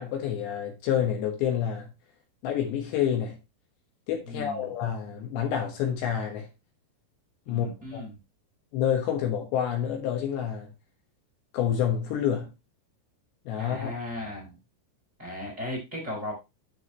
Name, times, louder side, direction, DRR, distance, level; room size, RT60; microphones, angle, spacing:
voice 1, 0.0-1.9 2.4-3.4 4.1-6.5 7.5-8.0 8.7-10.7 11.5-12.5 13.5-13.9, left 9 dB, 70° left, 3.3 m, -28 dB
voice 2, 4.2-4.7 7.5-8.1 13.6-14.6 15.2-16.3, left 1 dB, 20° right, 3.2 m, -36 dB
12.5 x 4.9 x 3.1 m
omnidirectional pair, 5.6 m